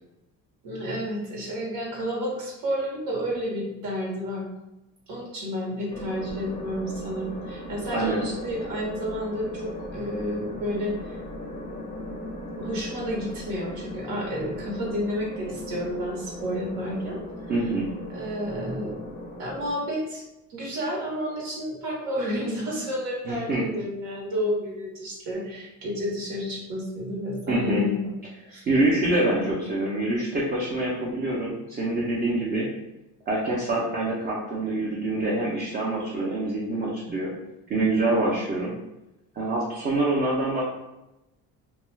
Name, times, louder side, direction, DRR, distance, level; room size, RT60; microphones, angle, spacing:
voice 1, 0.6-4.5 5.1-11.2 12.6-17.2 18.1-19.0 19.4-20.2 20.5-28.0 28.5-28.7, equal, 75° right, -3 dB, 1.1 m, -31 dB
sound 1, 5.9-19.7, left 1 dB, 20° left, 0.5 m, -38 dB
voice 2, 7.9-8.2 17.5-17.9 23.2-23.7 27.5-27.9 28.7-32.7 33.3-37.3 37.7-38.7 39.4-40.6, right 2 dB, 30° right, -5 dB, 0.6 m, -25 dB
2.4 x 2.3 x 3.1 m, 0.95 s
cardioid pair, 115°, 35 cm